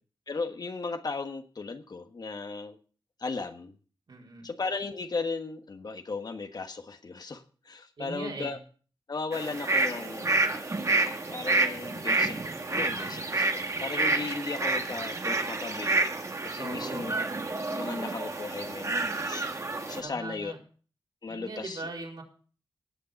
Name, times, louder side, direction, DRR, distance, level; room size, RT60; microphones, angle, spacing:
voice 1, 0.3-2.8 3.2-3.8 4.4-8.6 9.1-10.4 11.3-12.4 12.7-16.1 16.4-17.1 17.6-20.5 21.2-21.9, left 4 dB, 50° left, 7 dB, 1.4 m, -36 dB
voice 2, 4.1-4.5 8.0-8.5 16.6-17.1 20.0-20.6 21.3-22.2, right 3 dB, 60° right, -1 dB, 4.4 m, -40 dB
sound 1, 9.3-20.0, right 3 dB, 35° right, 1.8 m, -29 dB
18.0 x 6.8 x 5.2 m, 0.41 s
cardioid pair, 75°, 9 cm